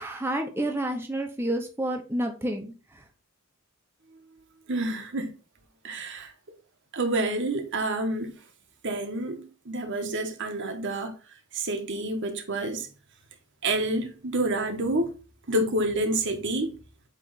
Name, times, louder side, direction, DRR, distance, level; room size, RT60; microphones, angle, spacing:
voice 1, 0.0-3.0, right 1 dB, 10° right, 0.8 m, -30 dB
voice 2, 4.7-5.3 5.8-6.3 6.9-8.3 8.8-11.1 11.5-12.9 13.6-15.1 15.5-16.8, right 1 dB, 55° right, 1.2 m, -28 dB
8.3 x 3.3 x 4.0 m
head